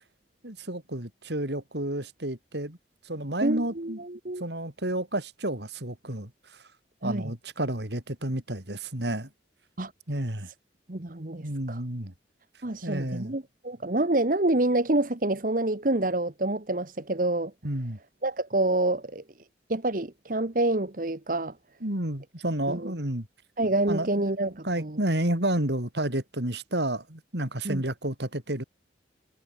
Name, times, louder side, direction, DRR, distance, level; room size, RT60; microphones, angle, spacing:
voice 1, 0.4-2.8 3.0-4.0 4.4-6.6 7.0-9.3 10.1-10.5 11.4-12.1 12.8-13.4 17.6-18.0 21.8-23.3 23.9-24.1 24.4-28.6, right 1 dB, 65° right, 4.3 m, -31 dB
voice 2, 3.4-4.4 7.0-7.3 9.8-9.9 10.9-11.8 12.6-17.5 18.2-19.2 19.7-21.6 22.7-22.9 23.6-25.0 27.6-27.8, right 2 dB, 45° right, 1.3 m, -27 dB
head